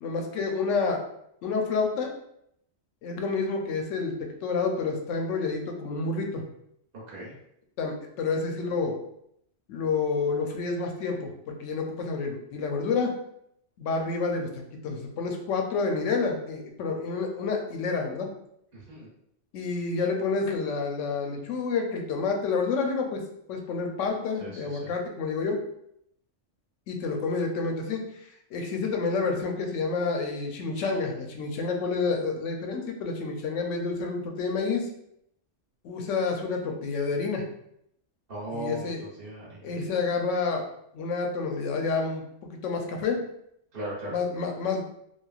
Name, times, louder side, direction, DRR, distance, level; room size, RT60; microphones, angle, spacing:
voice 1, 0.0-1.0 1.4-2.1 3.0-6.4 7.8-9.0 9.7-13.1 13.8-14.5 14.8-18.3 19.5-23.2 23.5-25.6 26.9-28.0 28.5-34.9 35.8-37.4 38.5-39.0 39.6-40.6 40.9-43.2 44.1-44.8, left 4 dB, 85° left, 3 dB, 0.9 m, -29 dB
voice 2, 18.7-19.1 24.4-24.9 38.3-38.9 39.2-39.7 43.7-44.2, right 1 dB, 50° right, -6 dB, 1.0 m, -37 dB
3.0 x 2.3 x 2.3 m, 0.75 s
omnidirectional pair, 1.2 m